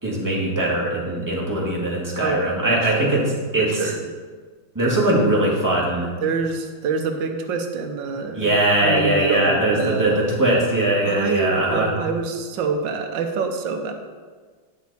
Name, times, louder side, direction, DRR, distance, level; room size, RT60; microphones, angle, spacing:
voice 1, 0.0-3.9 4.7-6.1 8.3-11.9, right 1 dB, 10° right, -6 dB, 1.7 m, -21 dB
voice 2, 2.2-3.2 3.6-4.0 6.2-8.5 8.8-10.2 11.0-13.9, right 5 dB, 75° right, 5 dB, 1.4 m, -26 dB
9.5 x 6.1 x 4.1 m, 1.5 s
omnidirectional pair, 2.1 m